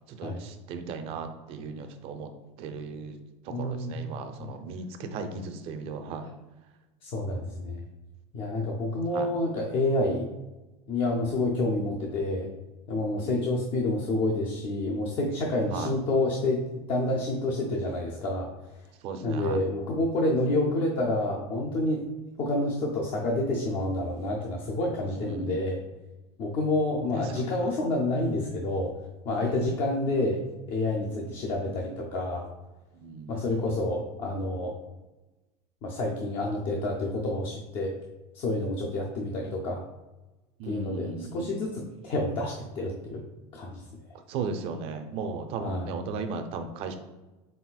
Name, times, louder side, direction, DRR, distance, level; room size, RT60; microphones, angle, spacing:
voice 1, 0.1-2.3 2.6-3.2 3.5-6.3 9.1-9.3 11.2-11.3 13.2-13.4 15.7-15.9 19.0-19.6 25.1-25.6 27.2-27.5 29.3-29.7 33.0-33.3 40.6-41.5 44.3-47.0, right 4 dB, 40° right, 7 dB, 0.4 m, -36 dB
voice 2, 3.5-4.1 4.4-4.5 7.0-7.8 8.3-10.3 10.9-12.5 12.9-18.5 19.2-22.1 22.4-25.8 26.4-28.9 29.2-32.5 33.3-34.7 35.8-37.9 38.3-39.8 40.7-43.2 43.5-43.8 45.6-45.9, left 2 dB, 35° left, -1 dB, 0.5 m, -28 dB
4.1 x 3.9 x 2.3 m, 1.1 s
supercardioid pair, 155°, 15 cm